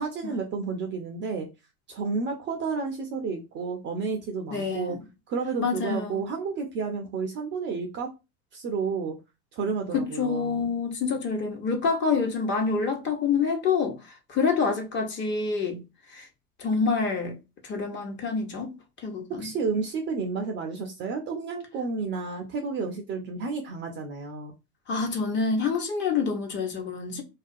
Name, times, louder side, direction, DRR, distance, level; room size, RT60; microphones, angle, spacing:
voice 1, 0.0-1.5 1.9-5.0 5.3-8.1 8.5-9.2 9.5-10.7 19.3-24.5, right 4 dB, 25° right, 0.4 m, -31 dB
voice 2, 4.5-5.0 5.6-6.2 9.9-14.0 14.3-15.8 16.1-16.3 16.6-17.4 17.6-18.7 19.0-19.5 24.9-27.2, left 5 dB, 25° left, 0.6 m, -27 dB
2.3 x 2.2 x 2.5 m
hypercardioid pair, 95°, 45 cm